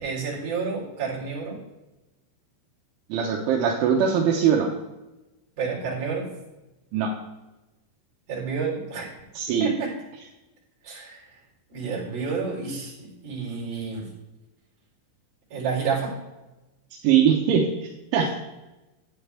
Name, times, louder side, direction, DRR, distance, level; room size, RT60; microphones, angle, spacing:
voice 1, 0.0-1.6 5.6-6.3 8.3-9.1 9.6-10.0 10.8-11.2 11.7-14.1 15.5-16.2, right 5 dB, 35° right, -4 dB, 4.3 m, -30 dB
voice 2, 3.1-4.7 6.9-7.1 9.4-9.7 17.0-18.4, right 7 dB, 80° right, 0 dB, 3.3 m, -21 dB
12.0 x 9.0 x 3.4 m, 1.0 s
omnidirectional pair, 5.6 m